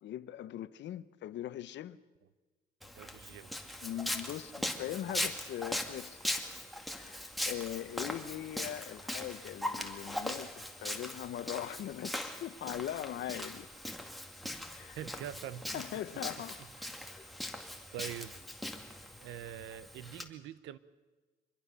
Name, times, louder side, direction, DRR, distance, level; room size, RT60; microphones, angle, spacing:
voice 1, 0.0-2.0 3.8-6.2 7.0-13.7 14.7-15.0 15.7-16.8, left 12 dB, 75° left, 0.9 m, -41 dB
Walk footsteps, 2.8-20.2, left 1 dB, ahead, 2.3 m, -40 dB
voice 2, 3.0-3.5 15.0-15.8 17.9-18.3 19.2-20.8, right 11 dB, 85° right, 1.0 m, -44 dB
25.5 x 21.5 x 6.9 m
cardioid pair, 85°, 19 cm